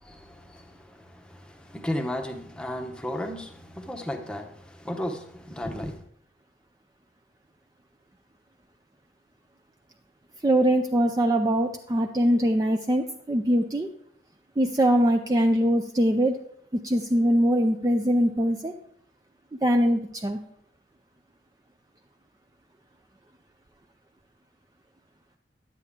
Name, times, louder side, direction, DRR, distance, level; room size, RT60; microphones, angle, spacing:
voice 1, 0.0-6.0, left 1 dB, 5° left, 0.8 m, -34 dB
voice 2, 10.4-13.9 14.6-16.4 16.7-18.7 19.6-20.4, equal, 20° right, 0.4 m, -22 dB
10.0 x 8.3 x 3.6 m
head